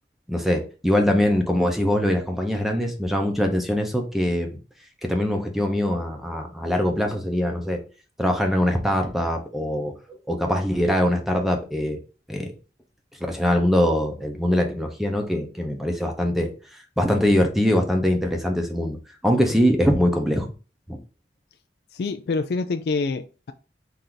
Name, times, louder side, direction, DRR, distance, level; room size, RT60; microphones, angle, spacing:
voice 1, 0.3-4.6 5.0-7.8 8.2-12.0 12.3-12.5 13.3-20.5 20.9-21.0, equal, ahead, 0.7 m, -23 dB
voice 2, 21.9-23.5, left 3 dB, 60° left, 0.3 m, -26 dB
4.5 x 2.7 x 3.8 m
head